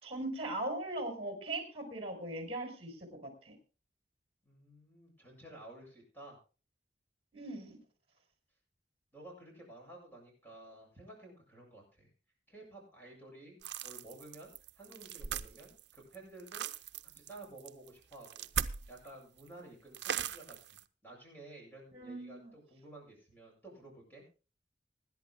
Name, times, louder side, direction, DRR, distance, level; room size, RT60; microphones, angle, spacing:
voice 1, 0.0-2.9 3.2-3.5 7.3-7.8 21.9-22.5, right 2 dB, 35° right, 4 dB, 4.8 m, -39 dB
voice 2, 4.4-6.4 9.1-12.1 12.5-16.7 17.0-18.5 18.9-24.2, right 2 dB, 10° left, -1 dB, 7.5 m, -53 dB
sound 1, 13.6-19.1 19.4-19.5 19.9-20.8, right 8 dB, 70° right, 0.6 m, -39 dB
25.0 x 11.0 x 2.2 m, 0.34 s
head